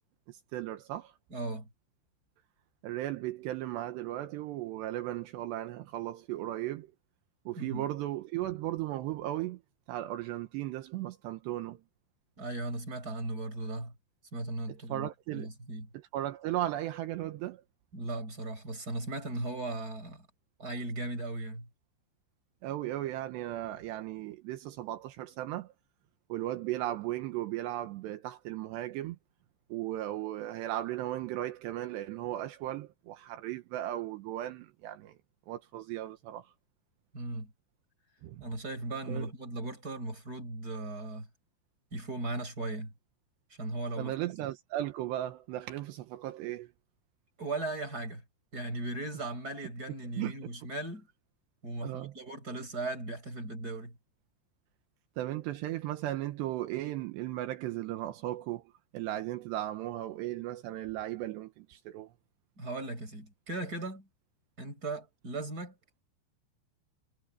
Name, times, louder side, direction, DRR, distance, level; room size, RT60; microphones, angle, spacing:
voice 1, 0.3-1.1 2.8-6.9 7.5-9.6 9.9-11.8 14.7-15.5 15.9-17.6 22.6-25.7 26.3-29.2 29.7-35.2 35.5-36.5 38.2-38.4 39.1-39.3 44.0-46.7 50.2-50.3 51.8-52.1 55.2-62.1, right 14 dB, 80° right, 3.2 m, -36 dB
voice 2, 1.3-1.7 7.6-7.9 12.4-13.9 14.3-15.9 17.9-20.3 20.6-21.7 37.1-37.5 38.4-41.3 41.9-42.9 43.6-44.3 47.4-48.2 48.5-51.1 51.6-54.0 62.6-64.1 64.6-65.7, right 2 dB, 20° right, 7.0 m, -37 dB
omnidirectional pair, 5.0 m